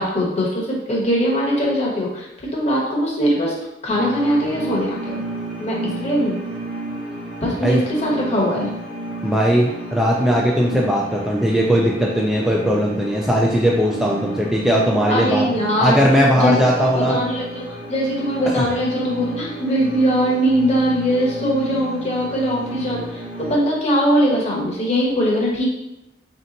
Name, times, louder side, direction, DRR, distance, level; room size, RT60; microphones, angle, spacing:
voice 1, 0.0-3.6 3.8-5.2 5.6-6.4 7.4-8.7 15.1-16.0 16.3-25.7, equal, 35° left, -3 dB, 1.0 m, -21 dB
sound 1, 3.9-23.6, right 2 dB, 30° right, 0.7 m, -32 dB
voice 2, 9.2-15.5 15.8-17.2 18.5-18.6, equal, 5° right, -3 dB, 0.3 m, -18 dB
3.3 x 2.8 x 3.8 m, 0.89 s
head